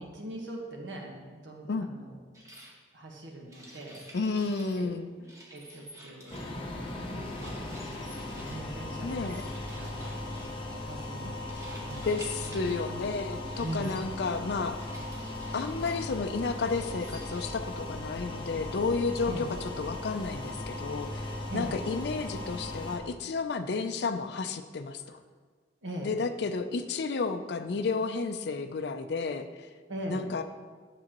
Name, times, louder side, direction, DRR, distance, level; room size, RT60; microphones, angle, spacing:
voice 1, 0.0-2.5 2.9-4.1 4.8-4.9 5.2-6.4 7.1-7.8 8.4-12.8 13.6-14.0 19.2-19.5 21.5-21.8 25.8-26.2 29.9-30.3, right 1 dB, 90° right, 0 dB, 1.3 m, -41 dB
sound 1, 2.3-2.7 3.5-4.8 5.2-6.6 7.3-8.6 9.2-10.6 11.5-13.0 13.5-14.0 14.7-16.0 16.6-17.5, right 1 dB, 15° right, 1.1 m, -50 dB
voice 2, 4.1-5.1 9.0-9.4 11.2-11.3 12.1-14.8 15.5-19.5 19.8-25.2 26.0-29.7 30.1-30.4, left 4 dB, 65° left, 8 dB, 0.4 m, -32 dB
sound 2, 6.3-23.0, left 2 dB, 30° left, 0.9 m, -38 dB
9.0 x 7.0 x 3.0 m, 1.5 s
head